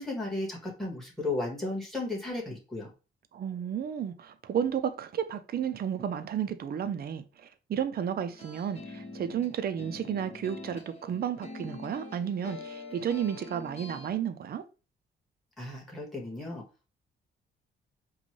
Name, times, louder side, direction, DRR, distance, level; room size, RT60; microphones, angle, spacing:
voice 1, 0.0-2.9 15.6-16.6, left 2 dB, ahead, 1.7 m, -34 dB
voice 2, 3.3-14.6, right 8 dB, 50° right, 0.5 m, -32 dB
sound 1, 8.3-14.1, left 2 dB, 30° left, 1.3 m, -45 dB
5.1 x 2.3 x 3.2 m
cardioid pair, 105°, 21 cm